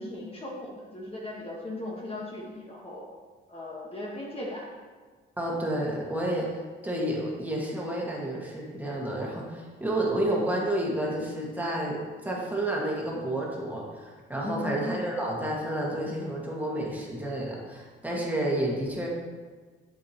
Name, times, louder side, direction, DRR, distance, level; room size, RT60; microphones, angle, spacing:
voice 1, 0.0-3.1 3.5-4.7 14.4-14.8, left 2 dB, 30° left, -3 dB, 1.3 m, -38 dB
voice 2, 5.4-6.5 6.8-19.1, right 1 dB, 10° right, -4 dB, 1.7 m, -30 dB
7.5 x 7.3 x 3.0 m, 1.5 s
cardioid pair, 90°, 20 cm